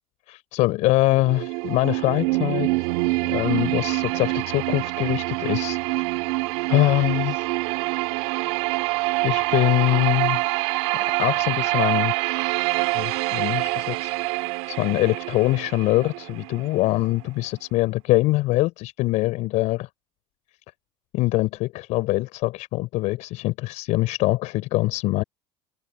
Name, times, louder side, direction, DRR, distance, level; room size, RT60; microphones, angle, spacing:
voice 1, 0.3-2.7 3.2-6.0 6.7-7.5 9.2-10.4 11.1-12.1 12.9-14.1 14.7-19.9 21.1-25.2, left 19 dB, 70° left, 4.2 m, -23 dB
sound 1, 1.1-17.1, right 24 dB, 80° right, 2.7 m, -26 dB
hypercardioid pair, 75°, 13 cm